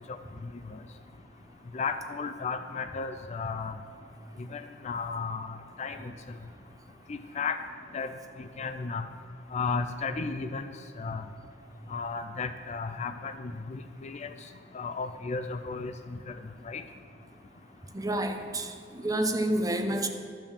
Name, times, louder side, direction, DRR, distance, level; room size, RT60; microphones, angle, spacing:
voice 1, 0.4-0.8 1.7-3.8 4.4-6.1 7.1-7.6 7.9-8.1 8.4-9.1 9.5-10.7 11.0-11.3 11.9-14.3 14.7-16.3 16.6-16.8, left 4 dB, 40° left, 8 dB, 0.4 m, -34 dB
voice 2, 17.9-20.1, right 1 dB, 20° right, 5 dB, 0.7 m, -29 dB
12.0 x 5.4 x 7.1 m, 2.1 s
head